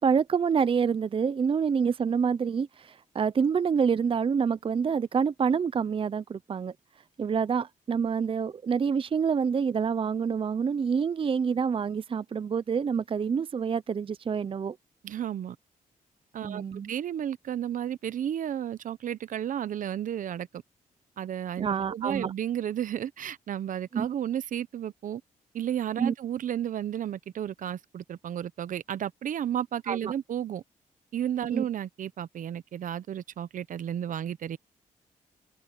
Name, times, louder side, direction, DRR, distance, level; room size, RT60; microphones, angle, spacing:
voice 1, 0.0-6.7 7.2-14.8 16.4-16.9 21.6-22.3 23.9-24.1 26.0-26.1 29.9-30.1 31.5-31.6, right 6 dB, 40° right, 0.6 m, -27 dB
voice 2, 15.0-15.6 16.3-20.5 21.2-25.2 25.5-30.6 31.1-34.6, right 10 dB, 65° right, 0.8 m, -32 dB
cardioid pair, 80°, 14 cm